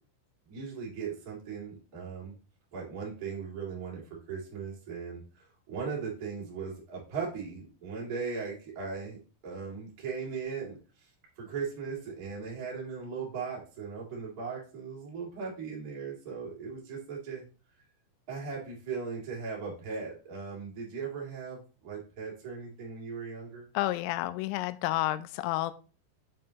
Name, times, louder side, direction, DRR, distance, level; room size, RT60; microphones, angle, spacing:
voice 1, 0.5-2.3 2.7-4.0 4.3-9.2 9.4-10.8 11.3-17.4 18.3-23.6, right 5 dB, 40° right, -4 dB, 1.3 m, -38 dB
voice 2, 23.8-25.7, left 16 dB, 85° left, 13 dB, 3.1 m, -30 dB
7.5 x 5.5 x 2.8 m, 0.35 s
omnidirectional pair, 6.0 m